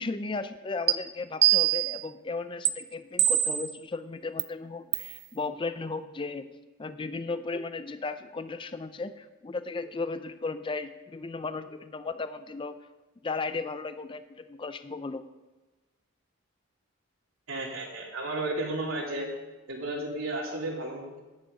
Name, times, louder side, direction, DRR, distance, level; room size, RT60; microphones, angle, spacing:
voice 1, 0.0-6.5 6.8-12.7 13.2-15.2, left 3 dB, 25° left, 11 dB, 0.4 m, -35 dB
sound 1, 0.9-1.0 1.4-2.0 2.7-2.8 3.2-3.7 4.4-4.5 4.9-5.1, right 14 dB, 50° right, 0.5 m, -23 dB
voice 2, 17.5-19.3 19.7-21.2, right 2 dB, 80° right, -4 dB, 2.9 m, -33 dB
10.5 x 10.0 x 5.3 m, 1.2 s
head